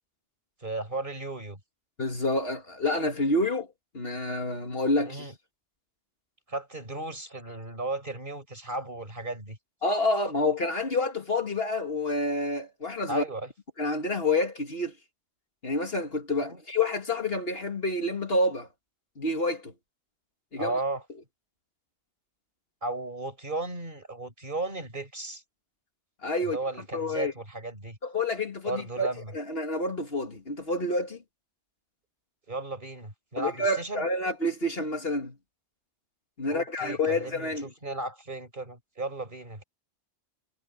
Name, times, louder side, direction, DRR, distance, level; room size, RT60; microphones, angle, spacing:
voice 1, 0.6-1.6 5.0-5.3 6.5-9.6 13.1-13.5 16.4-16.6 20.6-21.0 22.8-25.4 26.4-28.0 28.6-29.3 32.5-34.1 36.5-39.6, right 2 dB, 50° right, 5.4 m, -35 dB
voice 2, 2.0-3.7 3.9-5.3 9.8-13.2 13.8-14.9 15.6-18.7 19.2-19.7 20.5-20.7 26.2-26.6 26.9-27.3 28.0-31.2 33.4-35.4 36.4-37.7, left 2 dB, 60° left, 2.6 m, -28 dB
omnidirectional pair, 1.1 m